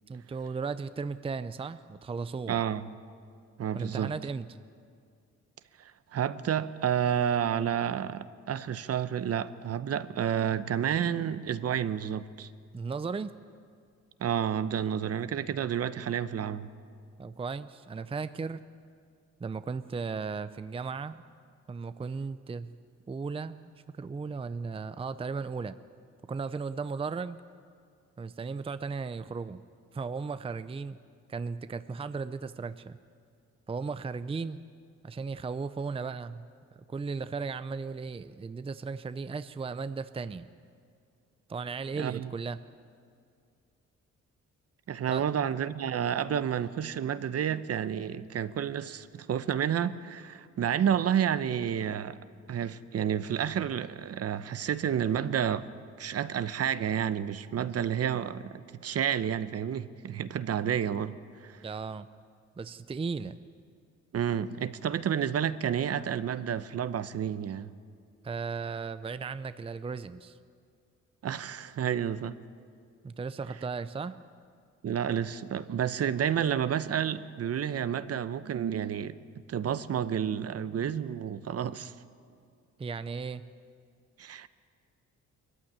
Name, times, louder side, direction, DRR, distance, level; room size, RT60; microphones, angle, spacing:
voice 1, 0.1-2.6 3.7-4.5 12.7-13.3 17.2-18.6 19.4-21.2 21.7-22.8 23.1-23.7 24.0-25.8 26.3-27.4 28.2-29.6 29.9-31.0 31.3-33.0 33.7-34.6 35.0-36.5 36.7-40.5 41.5-42.6 45.1-45.2 61.6-62.1 62.6-63.4 68.2-70.4 73.0-74.2 82.8-83.5, right 4 dB, 20° right, 12 dB, 0.6 m, -36 dB
voice 2, 2.5-2.9 3.6-4.1 5.8-12.5 14.2-16.7 42.0-42.3 44.9-52.2 52.5-55.7 56.0-61.2 61.4-61.6 64.1-67.7 71.2-72.4 74.8-79.1 79.5-81.9 84.2-84.5, right 9 dB, 55° right, 13 dB, 0.9 m, -30 dB
21.5 x 14.5 x 9.7 m, 2.3 s
cardioid pair, 90°, 30 cm